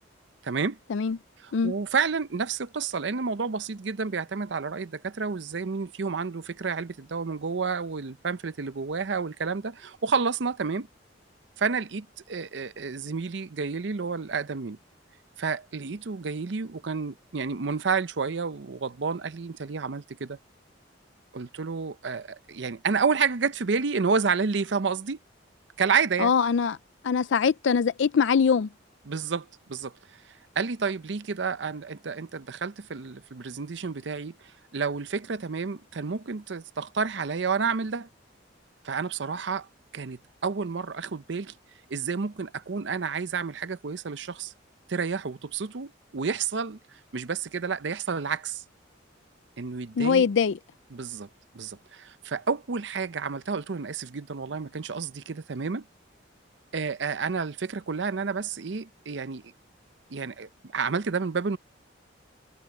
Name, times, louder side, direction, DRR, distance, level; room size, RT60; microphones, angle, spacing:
voice 1, 0.4-0.8 1.4-10.9 11.6-14.8 15.4-20.4 21.3-25.2 25.8-26.3 29.1-29.9 30.6-34.3 34.7-38.1 38.8-39.7 39.9-41.5 41.9-44.5 44.9-46.8 47.1-48.6 49.6-50.2 50.9-51.3 51.5-55.8 56.7-59.4 60.1-61.6, right 5 dB, 65° right, 0.6 m, -30 dB
voice 2, 26.2-26.8 27.0-28.7 50.0-50.6, left 6 dB, 70° left, 0.4 m, -22 dB
head